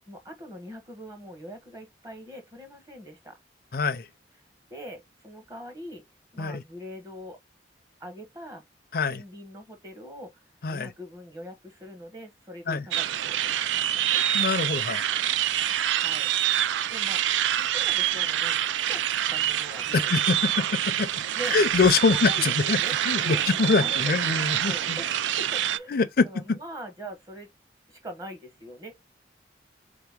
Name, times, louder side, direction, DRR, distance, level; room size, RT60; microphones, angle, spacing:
voice 1, 0.1-3.4 4.7-6.0 6.3-7.4 8.0-8.6 9.1-10.4 10.7-14.2 15.9-17.2 17.6-19.0 19.3-20.1 21.3-21.6 22.1-24.4 24.6-27.5 27.9-28.9, equal, 20° right, 1.0 m, -42 dB
voice 2, 3.7-4.0 6.4-6.6 8.9-9.2 10.6-10.9 12.7-12.8 14.3-15.1 19.9-21.1 21.5-22.8 23.1-25.0 25.9-26.6, left 4 dB, 50° left, 0.5 m, -24 dB
Birds Ambience Loud, 12.9-25.8, right 11 dB, 80° right, 0.3 m, -26 dB
3.8 x 2.8 x 3.5 m
head